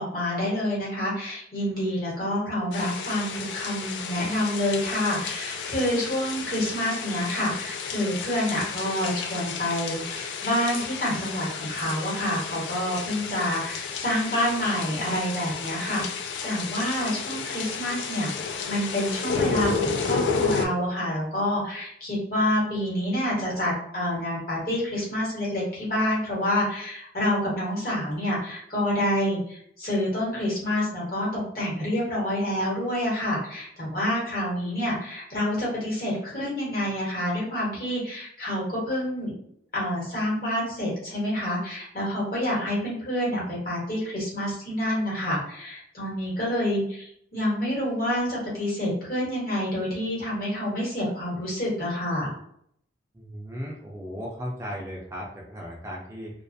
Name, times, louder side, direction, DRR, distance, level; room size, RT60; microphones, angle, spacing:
voice 1, 0.0-16.0 16.4-18.3 18.7-39.3 39.7-52.3, left 1 dB, 50° left, -6 dB, 1.2 m, -28 dB
sound 1, 2.7-20.7, left 5 dB, 80° left, 0.3 m, -32 dB
voice 2, 53.1-56.3, equal, 15° right, -3 dB, 0.4 m, -36 dB
2.4 x 2.3 x 2.6 m, 0.68 s
head